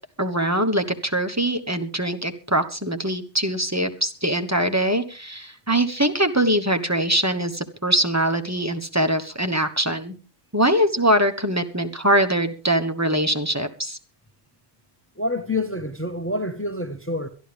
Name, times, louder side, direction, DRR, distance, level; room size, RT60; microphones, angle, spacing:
voice 1, 0.2-10.1 10.5-14.0, right 1 dB, 15° right, 1.1 m, -22 dB
voice 2, 15.2-17.3, left 1 dB, 10° left, 1.1 m, -27 dB
22.5 x 12.0 x 3.4 m
omnidirectional pair, 1.1 m